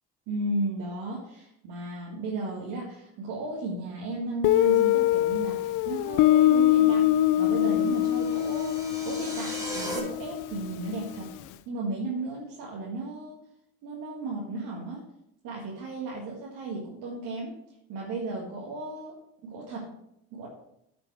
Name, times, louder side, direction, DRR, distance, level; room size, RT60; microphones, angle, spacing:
voice 1, 0.3-7.0 7.4-8.8 9.0-11.3 11.6-13.4 13.8-15.0 15.4-17.5 17.9-19.2 19.4-19.8 20.3-20.5, right 2 dB, 80° right, -4 dB, 1.7 m, -34 dB
Guitar, 4.4-11.1, left 13 dB, 70° left, 0.5 m, -23 dB
sound 1, 7.4-10.0, right 1 dB, 10° right, 2.7 m, -39 dB
9.3 x 5.2 x 4.7 m, 0.77 s
supercardioid pair, 80°, 32 cm